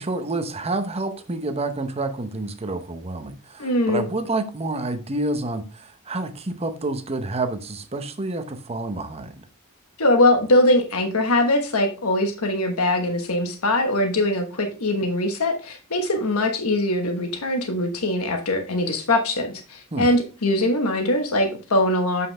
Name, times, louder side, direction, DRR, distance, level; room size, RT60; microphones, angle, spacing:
voice 1, 0.0-9.3 19.9-20.1, right 2 dB, 30° right, 0.8 m, -28 dB
voice 2, 3.6-4.1 10.0-22.3, left 1 dB, 90° left, 1.2 m, -22 dB
7.6 x 5.5 x 3.3 m
head